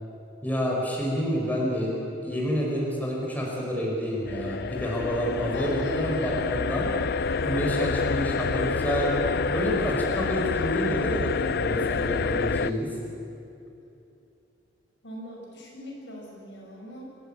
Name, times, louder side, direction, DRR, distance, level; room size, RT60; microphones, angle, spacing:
voice 1, 0.4-1.9 2.2-6.9 7.4-9.1 9.5-12.9, equal, 10° left, -3 dB, 4.6 m, -28 dB
sound 1, 4.3-12.7, left 5 dB, 60° left, 0.5 m, -28 dB
voice 2, 5.5-6.5 15.0-17.0, equal, 75° left, -1 dB, 6.4 m, -38 dB
25.0 x 16.0 x 8.7 m, 2.7 s
head